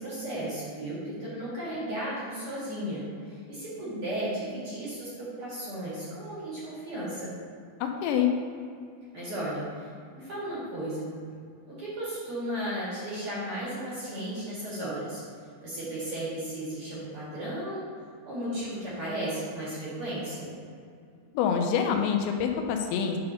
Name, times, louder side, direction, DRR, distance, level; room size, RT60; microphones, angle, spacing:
voice 1, 0.0-7.3 9.1-9.9 10.1-11.2 11.7-15.2 15.6-17.9 18.2-20.5, right 1 dB, 45° right, -9 dB, 1.9 m, -35 dB
voice 2, 7.8-8.3 21.3-23.2, left 7 dB, 80° left, 3 dB, 2.7 m, -26 dB
8.7 x 4.0 x 5.6 m, 2.3 s
omnidirectional pair, 5.6 m